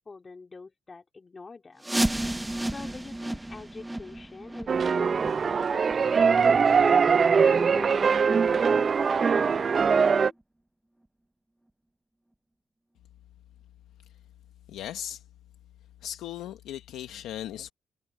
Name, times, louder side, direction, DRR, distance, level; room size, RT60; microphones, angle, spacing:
voice 1, 0.0-1.9 2.7-10.3, left 4 dB, 30° left, 3.4 m, -45 dB
sound 1, 1.8-7.4 7.7-7.9 8.4-8.5 9.1-9.2 9.7-9.8, right 1 dB, 10° right, 0.8 m, -33 dB
sound 2, 4.7-10.3, right 6 dB, 40° right, 0.4 m, -22 dB
voice 2, 14.7-15.3 16.0-17.7, left 11 dB, 85° left, 0.9 m, -38 dB
cardioid pair, 90°, 0 cm